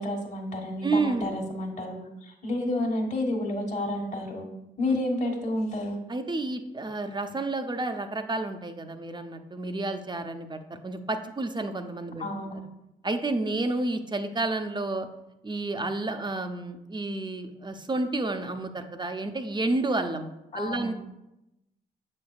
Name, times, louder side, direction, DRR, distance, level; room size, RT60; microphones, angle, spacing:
voice 1, 0.0-4.4 4.8-6.0 12.2-12.5 20.5-20.9, left 1 dB, 35° left, -1 dB, 1.5 m, -30 dB
voice 2, 0.8-1.4 6.1-12.3 13.0-15.1 15.4-20.9, right 2 dB, 20° right, 7 dB, 0.7 m, -30 dB
7.4 x 5.3 x 2.4 m, 0.91 s
hypercardioid pair, 45°, 21 cm